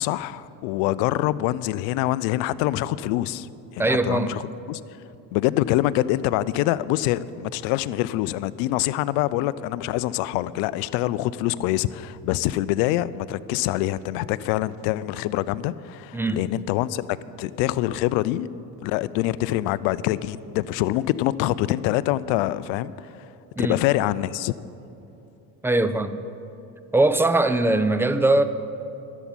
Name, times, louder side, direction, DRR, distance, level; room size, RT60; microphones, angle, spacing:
voice 1, 0.0-3.5 3.7-4.4 4.7-4.8 5.3-17.1 17.4-18.5 18.8-23.1 23.6-24.5, left 15 dB, 75° left, 17 dB, 0.6 m, -25 dB
voice 2, 3.8-4.4 16.1-16.4 23.6-23.8 25.6-26.2 26.9-28.4, right 2 dB, 5° right, 11 dB, 0.5 m, -21 dB
11.5 x 7.3 x 9.9 m, 2.9 s
supercardioid pair, 95°, 45 cm